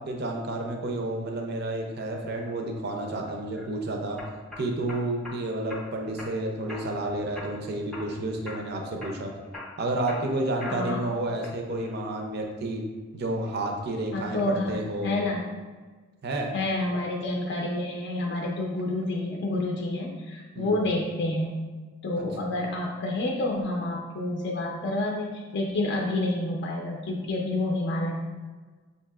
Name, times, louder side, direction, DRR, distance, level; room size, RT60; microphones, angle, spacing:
voice 1, 0.1-4.2 4.6-9.3 9.8-12.8 13.1-15.2 16.2-16.5 20.5-20.7, right 2 dB, 50° right, 2 dB, 0.5 m, -30 dB
sound 1, 3.3-3.6 4.2-5.4 5.7-6.3 6.7-7.1 7.4-8.1 8.5-8.7 9.0-11.0 11.4-11.9, left 2 dB, 5° left, 0.6 m, -41 dB
voice 2, 14.1-15.4 16.5-21.6 22.0-28.2, left 2 dB, 55° left, -1 dB, 0.4 m, -29 dB
6.4 x 2.7 x 2.3 m, 1.4 s
head